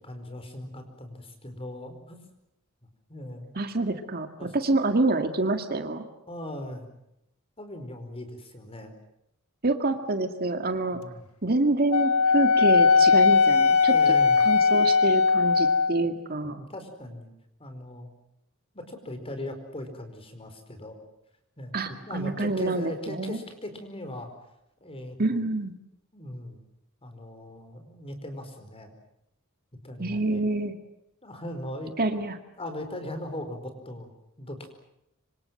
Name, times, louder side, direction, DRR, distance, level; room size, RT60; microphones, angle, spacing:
voice 1, 0.0-2.2 3.1-3.5 4.4-4.5 6.3-6.9 7.6-8.9 10.9-11.2 13.9-14.4 16.0-16.1 16.4-17.3 17.6-18.1 18.7-21.0 21.6-24.3 24.8-25.4 26.1-26.6 27.0-28.9 29.8-30.5 31.2-31.9 32.6-34.1 34.4-34.7, left 1 dB, 25° left, 7 dB, 4.8 m, -39 dB
voice 2, 3.5-6.0 9.6-11.0 11.4-14.2 14.4-16.6 21.7-23.4 25.2-25.7 30.0-30.7 32.0-32.3, right 2 dB, 45° right, 7 dB, 2.1 m, -27 dB
Wind instrument woodwind instrument, 11.9-16.1, left 5 dB, 80° left, 1.4 m, -19 dB
26.0 x 26.0 x 7.8 m, 0.82 s
head